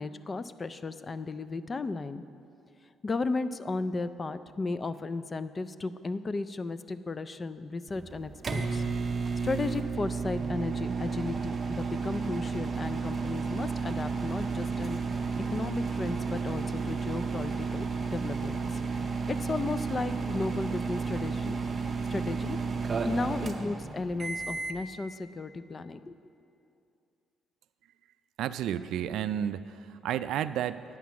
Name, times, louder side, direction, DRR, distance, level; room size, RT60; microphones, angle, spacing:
voice 1, 0.0-2.2 3.0-8.8 9.4-15.0 15.5-18.8 19.3-21.6 22.1-22.6 23.0-26.1, left 3 dB, 25° left, 13 dB, 0.3 m, -34 dB
sound 1, 7.9-24.8, right 4 dB, 30° right, 0.7 m, -32 dB
voice 2, 28.4-30.8, right 10 dB, 70° right, 13 dB, 0.3 m, -31 dB
9.2 x 9.2 x 5.9 m, 2.6 s
cardioid pair, 145°, 0 cm